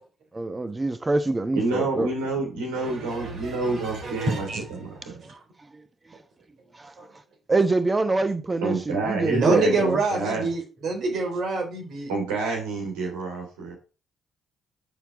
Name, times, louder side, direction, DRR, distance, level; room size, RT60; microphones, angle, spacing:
voice 1, 0.3-2.1 5.2-5.4 5.7-5.8 6.7-6.9 7.5-10.0, right 2 dB, 25° right, 1.0 m, -25 dB
voice 2, 1.5-5.2 8.6-10.5 12.1-13.7, right 3 dB, 80° right, 3.1 m, -28 dB
voice 3, 2.8-4.6 7.0-7.1 9.3-12.1, right 3 dB, 60° right, 3.6 m, -27 dB
9.1 x 4.6 x 5.0 m
hypercardioid pair, 50°, 0 cm